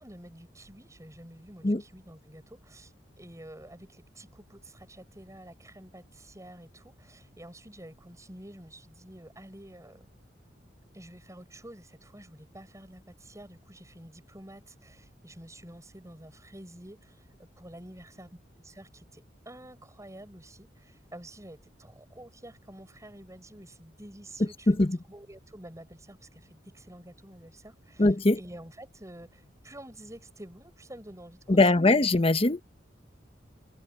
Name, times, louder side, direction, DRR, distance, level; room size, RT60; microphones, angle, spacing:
voice 1, 0.0-10.1 10.9-17.2 17.6-24.7 25.0-32.0, right 1 dB, 15° right, 6.0 m, -49 dB
voice 2, 24.7-25.0 28.0-28.4 31.5-32.6, left 2 dB, 30° left, 0.9 m, -21 dB
head